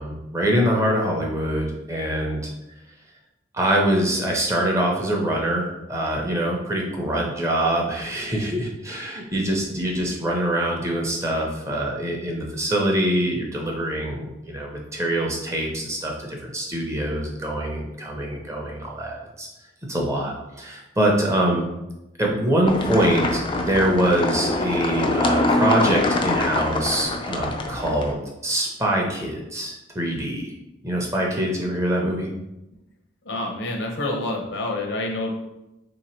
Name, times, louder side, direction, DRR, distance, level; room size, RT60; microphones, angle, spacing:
voice 1, 0.0-2.4 3.5-19.5 19.9-21.7 22.2-30.5 30.8-32.3, right 1 dB, 15° right, -1 dB, 0.6 m, -24 dB
sound 1, 22.7-28.1, left 2 dB, 25° left, 0.3 m, -24 dB
voice 2, 33.2-35.3, left 2 dB, 75° left, 1 dB, 0.8 m, -27 dB
3.3 x 2.9 x 4.3 m, 0.93 s
head